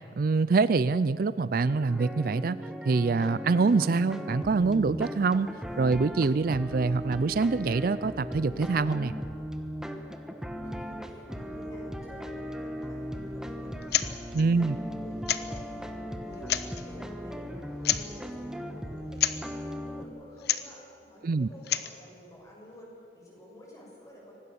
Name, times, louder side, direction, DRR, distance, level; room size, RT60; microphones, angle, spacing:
voice 1, 0.2-2.6 2.8-5.5 5.8-9.1 14.3-14.8 21.2-21.5, right 4 dB, 55° right, 16 dB, 0.4 m, -25 dB
sound 1, 1.6-20.1, equal, 5° right, 1.3 m, -38 dB
voice 2, 10.6-24.3, equal, 20° left, -3 dB, 6.8 m, -51 dB
sound 2, 13.8-14.1 14.4-14.5 15.3-15.6 16.3-16.8 17.8-18.2 19.2-19.4 20.4-20.7 21.5-22.0, left 11 dB, 65° left, 1.0 m, -28 dB
25.0 x 19.0 x 7.0 m, 2.9 s
head